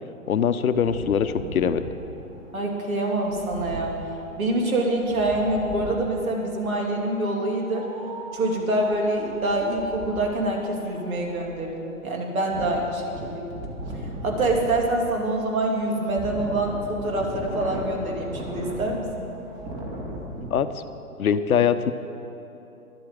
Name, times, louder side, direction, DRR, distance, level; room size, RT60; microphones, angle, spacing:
voice 1, 0.3-1.8 20.5-20.7 21.2-21.9, left 8 dB, 70° left, 11 dB, 0.8 m, -22 dB
Wind, 0.8-6.2 7.2-20.5, equal, 25° right, 2.0 m, -38 dB
voice 2, 2.5-4.0 4.4-7.9 8.3-13.5 14.2-19.3, right 1 dB, 65° right, 0 dB, 2.7 m, -26 dB
11.0 x 8.0 x 9.0 m, 2.9 s
hypercardioid pair, 145°, 45 cm